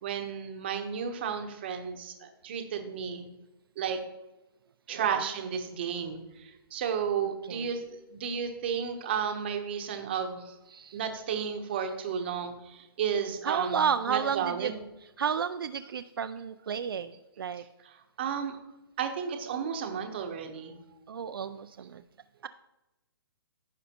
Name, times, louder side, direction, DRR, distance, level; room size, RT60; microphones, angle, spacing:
voice 1, 0.0-3.3 3.8-4.0 4.9-10.5 10.9-14.8 17.8-18.6 19.0-20.8, right 7 dB, 25° right, 6 dB, 0.8 m, -33 dB
voice 2, 4.9-5.2 7.5-7.7 10.7-11.0 13.4-14.7 15.2-17.1 17.4-17.6 21.1-22.0, right 7 dB, 65° right, 10 dB, 0.4 m, -31 dB
15.5 x 5.4 x 2.9 m, 0.99 s
hypercardioid pair, 175°, 13 cm